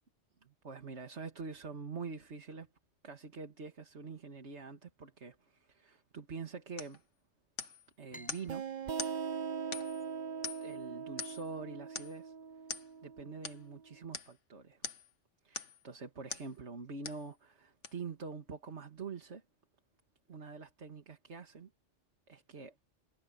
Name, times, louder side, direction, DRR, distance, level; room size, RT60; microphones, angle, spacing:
voice 1, 0.4-2.7 3.0-7.0 8.0-8.6 10.6-12.3 13.0-14.8 15.4-19.4 20.3-21.7 22.3-22.7, right 4 dB, 70° right, 2.2 m, -45 dB
sound 1, 6.8-7.0 7.6-7.9 8.3-8.5 9.0-9.2 9.7-10.1 10.4-10.8 11.2-11.5 12.0-12.2 12.7-12.9 13.4-13.6 14.1-14.3 14.8-15.1 15.5-15.8 16.3-16.5 17.0-17.3 17.8-17.9, left 5 dB, 90° left, 1.9 m, -43 dB
sound 2, 8.1-11.5, equal, 5° left, 5.8 m, -59 dB
sound 3, 8.5-13.8, right 6 dB, 45° right, 0.6 m, -41 dB
omnidirectional pair, 1.2 m